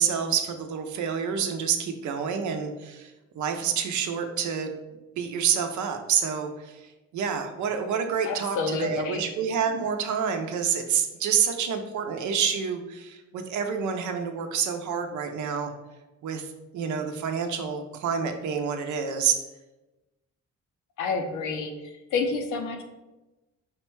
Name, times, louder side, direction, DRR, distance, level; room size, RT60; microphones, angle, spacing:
voice 1, 0.0-4.7 5.1-6.8 7.1-15.7 16.2-19.4, right 7 dB, 75° right, 6 dB, 0.7 m, -28 dB
voice 2, 8.2-9.2 21.0-21.7 22.1-22.8, left 4 dB, 85° left, 4 dB, 0.7 m, -28 dB
5.0 x 2.2 x 4.5 m, 1.1 s
cardioid pair, 90°, 30 cm